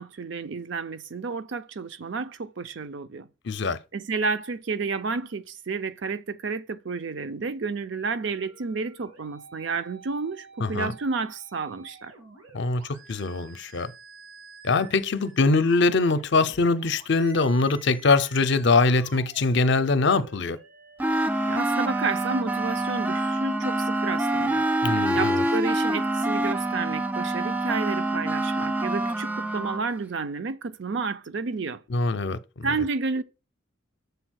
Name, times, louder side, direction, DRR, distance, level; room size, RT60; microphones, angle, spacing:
voice 1, 0.0-3.3 3.9-12.1 21.5-24.7 25.1-31.8 32.6-33.2, right 4 dB, 60° right, 0.5 m, -31 dB
voice 2, 3.5-3.8 10.6-10.9 12.5-12.8 13.1-13.9 14.6-20.6 24.8-25.4 31.9-32.7, left 3 dB, 55° left, 0.6 m, -23 dB
sound 1, 8.1-21.1, right 3 dB, 90° right, 2.8 m, -50 dB
sound 2, 21.0-29.8, right 1 dB, 10° right, 0.3 m, -26 dB
6.8 x 4.1 x 6.2 m
head